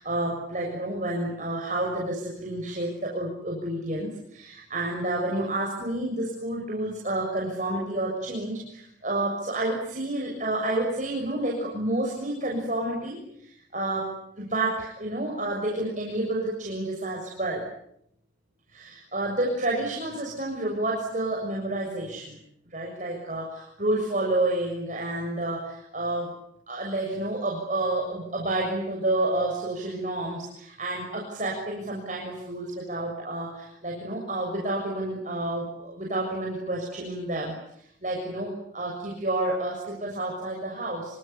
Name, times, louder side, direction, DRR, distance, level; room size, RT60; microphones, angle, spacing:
voice 1, 0.0-17.6 18.7-22.4 22.7-26.3 26.7-37.5 38.0-41.2, right 1 dB, 40° right, -2 dB, 6.9 m, -30 dB
27.0 x 25.5 x 8.5 m, 0.74 s
head